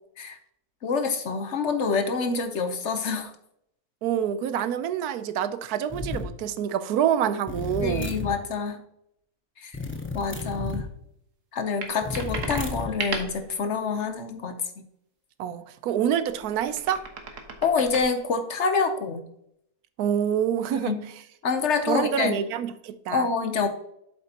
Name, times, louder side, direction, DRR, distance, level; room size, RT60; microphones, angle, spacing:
voice 1, 0.8-3.3 7.8-8.8 9.6-9.8 10.1-10.9 11.5-14.6 17.6-19.2 20.7-21.0 21.4-22.3 23.1-23.7, left 5 dB, 55° left, 7 dB, 1.0 m, -26 dB
voice 2, 4.0-8.1 15.4-17.0 20.0-20.9 21.9-23.3, right 9 dB, 75° right, 11 dB, 1.1 m, -26 dB
sound 1, 5.9-6.3 7.5-8.4 9.7-10.9 12.0-13.0, left 4 dB, 15° left, 0.5 m, -33 dB
sound 2, 11.8-13.4 16.2-18.0, right 3 dB, 55° right, 1.5 m, -35 dB
7.8 x 7.6 x 2.9 m, 0.75 s
omnidirectional pair, 1.6 m